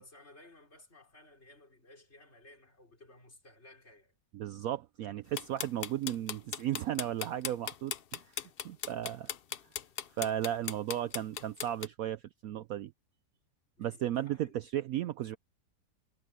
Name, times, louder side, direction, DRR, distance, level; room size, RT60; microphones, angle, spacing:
voice 1, 0.0-4.2 13.8-14.6, left 1 dB, 35° left, 5.0 m, -57 dB
voice 2, 4.3-9.3 10.2-12.9 13.8-15.4, right 11 dB, 70° right, 0.8 m, -35 dB
sound 1, 5.4-11.9, left 8 dB, 60° left, 0.5 m, -37 dB
omnidirectional pair, 1.9 m